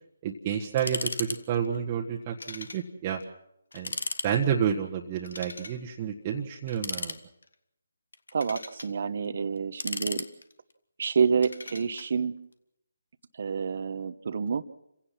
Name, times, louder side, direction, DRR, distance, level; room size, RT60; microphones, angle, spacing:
voice 1, 0.2-3.2 3.7-4.0 4.2-7.2, right 8 dB, 30° right, -1 dB, 1.5 m, -30 dB
sound 1, 0.8-1.4 1.6-1.8 2.4-2.8 3.2-3.3 3.7-4.3 5.2-5.8 6.7-7.5 8.1-8.9 9.6-10.7 11.4-12.1, left 3 dB, 75° left, 1.6 m, -36 dB
voice 2, 8.3-10.3 11.0-12.3 13.4-14.6, right 6 dB, 55° right, 13 dB, 1.1 m, -28 dB
28.5 x 16.5 x 6.0 m, 0.81 s
figure-of-eight pair, 150°, 0 cm